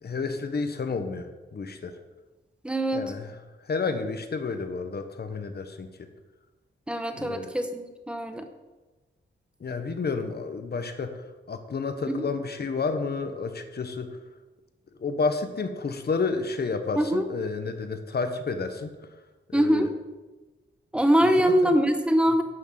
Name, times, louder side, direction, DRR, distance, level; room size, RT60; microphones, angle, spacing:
voice 1, 0.0-1.9 2.9-3.4 3.7-5.9 7.1-7.5 9.6-11.1 11.5-14.1 15.0-18.9 19.5-19.9 21.4-21.7, left 4 dB, 55° left, 7 dB, 1.3 m, -30 dB
voice 2, 2.6-3.1 6.9-8.5 12.1-12.2 17.0-17.3 19.5-19.9 20.9-22.4, equal, 5° right, 6 dB, 1.2 m, -23 dB
11.5 x 6.5 x 7.5 m, 1.2 s
wide cardioid pair, 125°, 20 cm